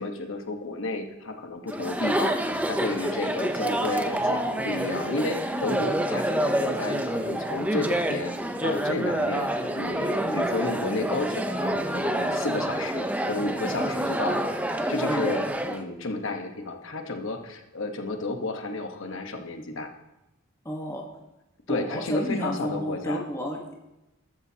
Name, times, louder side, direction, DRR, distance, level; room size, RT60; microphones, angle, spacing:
voice 1, 0.0-2.4 2.7-8.3 8.6-9.5 9.8-14.5 14.9-19.9 21.7-23.2, left 2 dB, 60° left, 5 dB, 1.2 m, -31 dB
Chatter, 1.7-15.8, right 1 dB, 5° right, 0.6 m, -28 dB
voice 2, 20.6-21.0 21.7-23.9, equal, 15° left, 0 dB, 1.2 m, -32 dB
13.5 x 13.0 x 2.8 m, 0.94 s
head